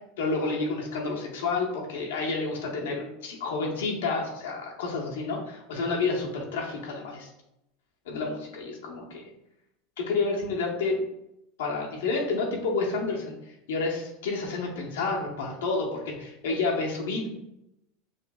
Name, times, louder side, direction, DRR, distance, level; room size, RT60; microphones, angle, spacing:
voice 1, 0.2-7.3 8.1-9.3 10.0-11.0 11.6-17.3, left 3 dB, 85° left, -1 dB, 1.1 m, -30 dB
6.3 x 2.6 x 2.3 m, 0.85 s
supercardioid pair, 120°, 0 cm